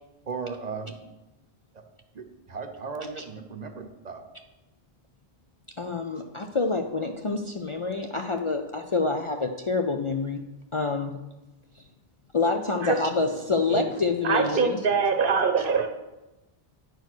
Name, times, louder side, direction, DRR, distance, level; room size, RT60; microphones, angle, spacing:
voice 1, 0.3-1.0 2.1-4.2, right 5 dB, 45° right, 6 dB, 0.9 m, -36 dB
voice 2, 5.8-10.4 10.7-11.2 11.8-11.9 12.3-14.8 15.6-15.7, left 3 dB, 40° left, 4 dB, 0.5 m, -27 dB
voice 3, 14.2-15.9, right 5 dB, 60° right, 6 dB, 1.1 m, -23 dB
9.4 x 4.7 x 6.1 m, 1.0 s
omnidirectional pair, 1.0 m